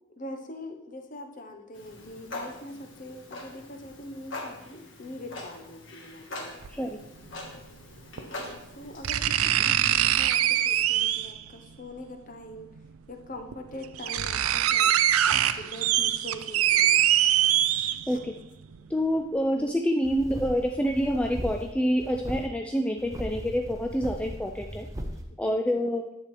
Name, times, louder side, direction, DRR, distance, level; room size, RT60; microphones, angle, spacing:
voice 1, 0.2-6.9 8.1-10.4 10.6-11.3 11.8-12.7 13.1-14.9 15.3-17.0 18.0-18.2 19.6-19.7 25.5-25.8, left 1 dB, 40° left, 5 dB, 0.9 m, -43 dB
Clock, 1.7-9.2, left 2 dB, 60° left, 1.5 m, -43 dB
sound 1, 6.6-6.7 8.2-8.3 9.0-11.4 12.8-12.9 13.5-13.6 13.8-18.3 18.7-18.8, right 11 dB, 90° right, 0.4 m, -23 dB
voice 2, 18.9-24.9 25.4-26.1, equal, 5° left, 2 dB, 0.3 m, -27 dB
sound 2, 20.0-21.7 22.0-22.5 23.0-25.2, equal, 15° right, 0.7 m, -38 dB
10.5 x 7.7 x 3.3 m, 0.85 s
head